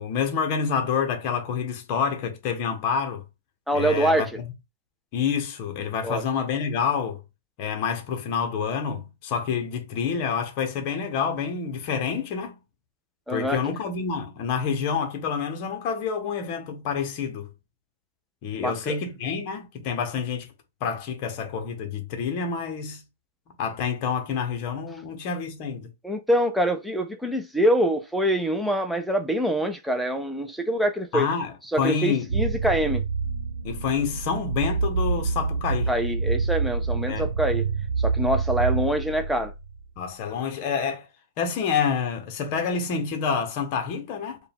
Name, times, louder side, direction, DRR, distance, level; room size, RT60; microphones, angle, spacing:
voice 1, 0.0-3.2 3.7-4.3 5.1-7.2 7.6-12.6 13.3-17.5 18.4-20.5 20.8-23.0 23.6-25.9 31.1-32.2 33.6-35.9 37.0-37.3 40.0-41.1 41.4-44.4, left 6 dB, 25° left, 0.8 m, -28 dB
voice 2, 3.7-4.3 6.0-6.2 13.3-13.6 18.6-19.0 26.0-31.3 31.7-33.0 35.9-37.7 38.0-39.5, equal, ahead, 0.4 m, -25 dB
sound 1, 32.3-39.8, right 4 dB, 90° right, 0.6 m, -27 dB
4.6 x 2.2 x 3.4 m
hypercardioid pair, 175°, 0 cm